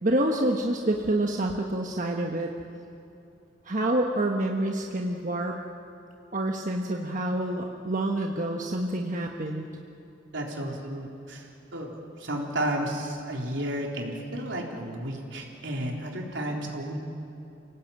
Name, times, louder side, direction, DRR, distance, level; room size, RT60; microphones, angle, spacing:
voice 1, 0.0-2.5 3.6-5.6 6.3-9.7, right 1 dB, 45° right, 1 dB, 1.3 m, -27 dB
voice 2, 10.3-11.4 11.7-17.0, right 1 dB, 75° right, 0 dB, 3.9 m, -32 dB
28.5 x 18.0 x 8.9 m, 2.8 s
head